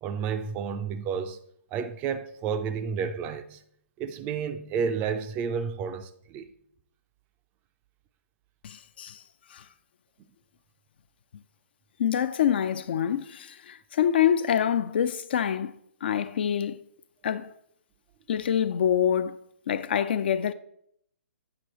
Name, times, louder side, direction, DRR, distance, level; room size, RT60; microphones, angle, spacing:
voice 1, 0.0-1.4 1.7-3.6 4.0-6.5, right 6 dB, 20° right, 0.4 m, -31 dB
voice 2, 8.6-9.2 9.5-9.7 12.0-16.8 17.2-17.5 18.3-19.4 19.7-20.5, left 9 dB, 45° left, 0.4 m, -26 dB
8.7 x 5.8 x 3.0 m
figure-of-eight pair, 125°, 7 cm